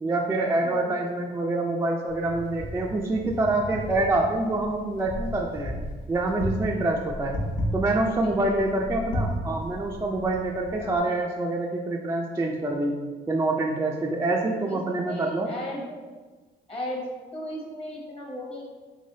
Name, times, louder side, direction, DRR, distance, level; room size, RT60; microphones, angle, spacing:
voice 1, 0.0-5.8 6.1-7.4 7.7-13.0 13.3-15.5, right 2 dB, 15° right, 0 dB, 0.3 m, -26 dB
voice 2, 0.6-0.9 8.2-8.7 10.8-11.1 14.7-16.0 16.7-18.6, left 1 dB, 30° left, -2 dB, 0.9 m, -36 dB
Wind, 2.1-11.0, equal, 80° left, 0.8 m, -34 dB
3.3 x 3.3 x 2.7 m, 1.3 s
cardioid pair, 90°, 20 cm